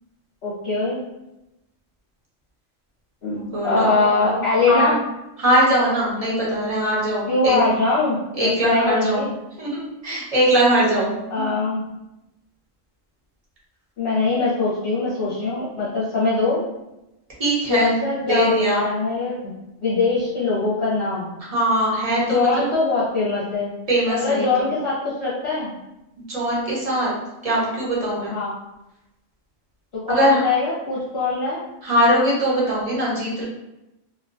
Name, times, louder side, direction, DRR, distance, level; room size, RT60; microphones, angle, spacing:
voice 1, 0.4-1.0 3.2-4.9 7.3-9.3 11.3-11.9 14.0-16.6 17.7-18.5 18.8-19.5 19.8-21.3 22.3-23.7 24.1-25.7 28.3-28.5 30.1-31.6, left 3 dB, 55° left, -7 dB, 0.9 m, -22 dB
voice 2, 3.3-4.4 4.7-4.9 5.4-7.6 8.3-9.3 9.6-11.5 17.4-17.9 18.3-18.9 21.5-22.5 23.9-24.5 26.3-27.1 27.4-28.3 30.1-30.4 31.8-33.4, right 1 dB, 35° right, -5 dB, 0.7 m, -21 dB
2.7 x 2.2 x 2.5 m, 0.93 s
omnidirectional pair, 1.3 m